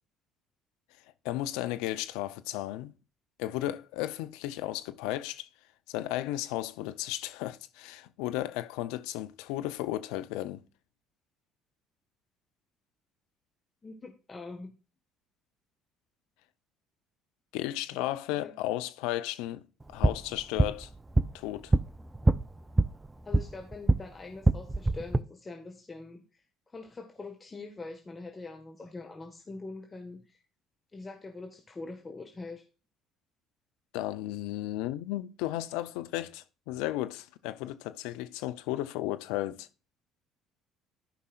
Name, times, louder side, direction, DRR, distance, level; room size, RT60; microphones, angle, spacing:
voice 1, 1.2-2.9 3.4-5.5 5.9-10.6 17.5-19.6 19.9-20.9 21.3-21.7 33.9-39.7, left 15 dB, 75° left, 0.6 m, -34 dB
voice 2, 13.8-14.8 17.9-18.1 18.3-18.5 23.2-26.4 26.7-30.4 30.9-32.6, left 3 dB, 25° left, 1.5 m, -43 dB
sound 1, 19.8-24.0 24.4-25.2, right 2 dB, 20° right, 0.5 m, -26 dB
14.5 x 5.5 x 2.4 m
hypercardioid pair, 60°, 0 cm